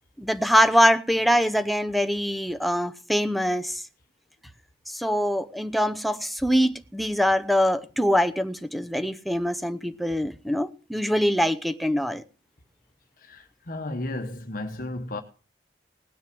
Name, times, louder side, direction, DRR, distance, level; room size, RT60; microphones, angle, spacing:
voice 1, 0.2-3.8 4.9-12.2, equal, ahead, 0.7 m, -23 dB
voice 2, 13.2-15.2, left 2 dB, 50° left, 1.2 m, -33 dB
18.5 x 6.3 x 6.1 m
head